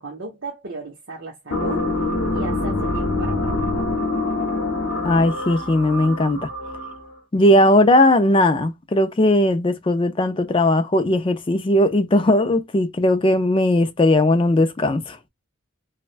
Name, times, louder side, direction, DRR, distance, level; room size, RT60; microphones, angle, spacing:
voice 1, 0.0-1.9 2.3-3.9, right 3 dB, 60° right, 0.8 m, -35 dB
sound 1, 1.5-7.1, left 2 dB, 65° left, 0.8 m, -25 dB
voice 2, 5.0-6.5 7.3-15.2, left 1 dB, 25° left, 0.3 m, -18 dB
3.2 x 2.1 x 2.5 m
head